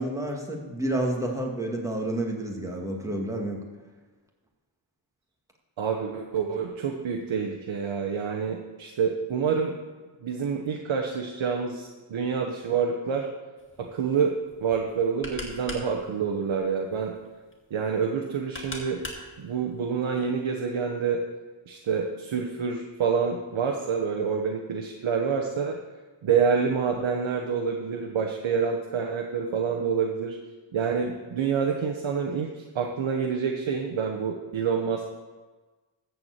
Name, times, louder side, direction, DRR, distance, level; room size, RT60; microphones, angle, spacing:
voice 1, 0.0-3.6, right 1 dB, 5° right, -1 dB, 2.3 m, -29 dB
voice 2, 5.8-9.7 10.2-13.3 13.8-14.3 14.6-17.1 17.7-19.0 19.4-21.2 21.7-25.8 26.2-30.4 30.7-35.0, right 6 dB, 85° right, 2 dB, 1.1 m, -27 dB
sound 1, 13.6-20.3, left 1 dB, 25° left, 2.5 m, -43 dB
14.0 x 4.8 x 8.0 m, 1.3 s
cardioid pair, 75°, 46 cm